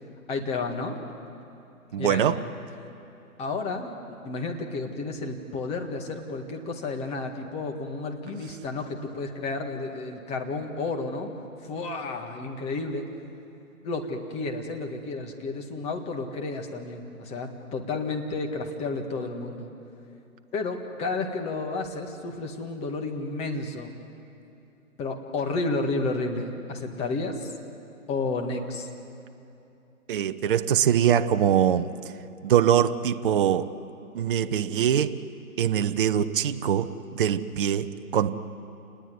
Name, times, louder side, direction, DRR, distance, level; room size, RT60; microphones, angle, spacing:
voice 1, 0.3-1.0 1.9-2.5 3.4-3.9 4.2-11.3 11.6-13.1 13.8-19.7 20.5-23.9 25.0-27.5 28.1-28.9, left 3 dB, 15° left, 1.8 m, -31 dB
voice 2, 1.9-2.4 30.1-31.9 32.4-33.7 34.1-35.2 35.6-38.4, right 9 dB, 35° right, 0.8 m, -23 dB
28.5 x 20.0 x 9.5 m
hypercardioid pair, 150°, 43 cm